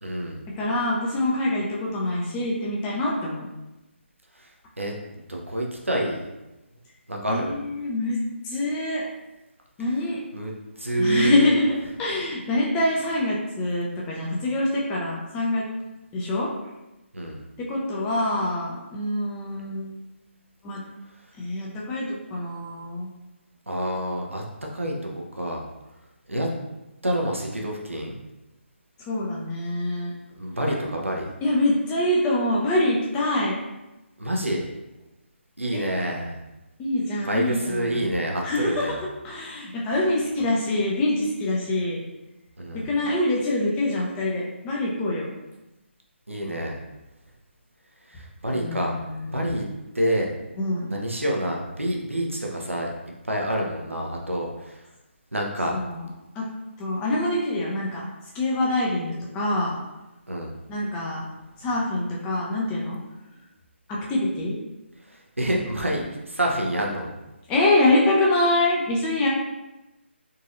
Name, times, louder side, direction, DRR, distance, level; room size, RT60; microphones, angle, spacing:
voice 1, 0.0-0.4 4.4-4.5 4.8-6.2 7.1-7.6 10.3-10.5 10.8-11.5 17.1-17.4 23.7-24.4 24.7-25.6 26.3-26.5 27.0-28.2 30.4-31.3 34.2-34.7 35.6-36.4 37.2-39.0 42.6-42.9 46.3-46.8 48.1-48.9 49.2-49.6 49.9-50.3 50.9-52.9 53.2-54.8 55.3-55.8 60.3-60.5 65.1-67.1, right 1 dB, 90° right, -1 dB, 0.7 m, -27 dB
voice 2, 0.6-3.5 7.3-9.1 9.8-10.2 11.0-15.6 16.1-16.5 17.6-19.9 20.6-20.8 21.4-23.1 29.1-30.1 31.4-33.6 35.7-35.8 36.8-38.0 38.4-42.0 42.7-45.3 48.5-49.4 50.6-50.9 55.7-56.0 56.3-56.5 56.8-58.0 58.3-59.8 60.7-61.2 61.6-63.0 63.9-64.6 67.5-69.3, left 1 dB, 15° left, -4 dB, 0.5 m, -25 dB
3.9 x 2.6 x 2.5 m, 0.99 s
figure-of-eight pair, 145°, 7 cm